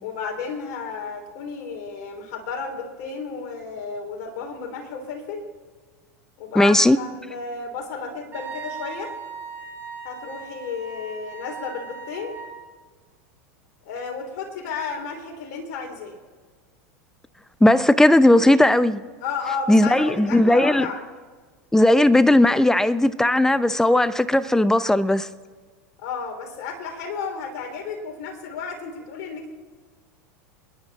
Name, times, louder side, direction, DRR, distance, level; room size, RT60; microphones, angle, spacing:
voice 1, 0.0-5.5 6.4-9.1 10.0-12.4 13.9-16.2 19.2-21.0 26.0-29.5, left 5 dB, 60° left, 3.5 m, -32 dB
voice 2, 6.5-7.0 17.6-19.0 19.7-20.9 21.7-25.3, left 1 dB, 5° left, 0.7 m, -17 dB
Wind instrument woodwind instrument, 8.3-12.6, right 5 dB, 25° right, 4.3 m, -38 dB
29.0 x 10.5 x 4.2 m
hypercardioid pair, 100°, 9 cm